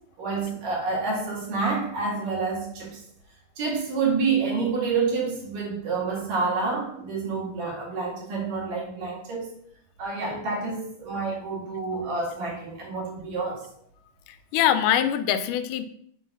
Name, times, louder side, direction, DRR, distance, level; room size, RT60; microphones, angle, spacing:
voice 1, 0.2-3.0 3.6-9.5 10.0-13.7, right 4 dB, 85° right, -3 dB, 3.7 m, -28 dB
voice 2, 14.3-15.8, left 10 dB, 85° left, 9 dB, 2.2 m, -23 dB
6.8 x 3.9 x 5.8 m, 0.68 s
omnidirectional pair, 3.7 m